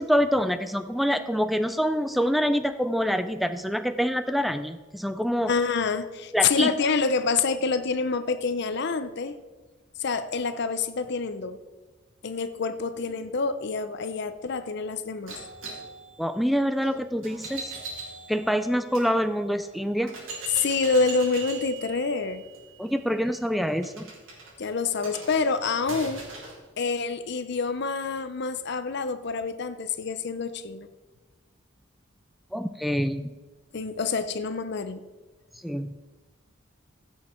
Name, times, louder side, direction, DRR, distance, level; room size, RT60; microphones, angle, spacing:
voice 1, 0.0-5.5 6.3-6.7 16.2-17.7 18.3-20.2 22.8-24.1 32.5-33.2 35.6-35.9, equal, ahead, 10 dB, 0.3 m, -26 dB
voice 2, 5.5-9.3 10.0-11.6 12.2-15.3 20.5-22.4 24.6-26.2 26.8-30.9 33.7-35.0, left 4 dB, 55° left, 11 dB, 0.6 m, -27 dB
sound 1, 15.3-19.1 19.6-19.7 20.1-26.6, right 4 dB, 80° right, 3.3 m, -40 dB
16.0 x 6.4 x 4.4 m, 1.3 s
head